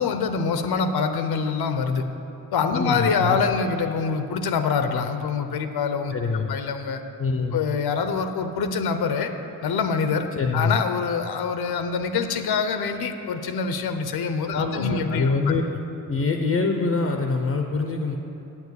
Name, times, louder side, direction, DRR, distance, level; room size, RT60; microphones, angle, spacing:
voice 1, 0.0-2.0 2.5-6.1 6.5-7.0 7.5-9.3 9.6-10.3 10.5-15.3, left 5 dB, 75° left, 8 dB, 0.8 m, -25 dB
voice 2, 2.7-3.4 6.1-6.6 7.2-7.6 10.3-10.8 14.5-15.6 16.1-18.2, left 4 dB, 40° left, 3 dB, 0.6 m, -24 dB
8.8 x 7.2 x 8.0 m, 2.9 s
wide cardioid pair, 170°, 38 cm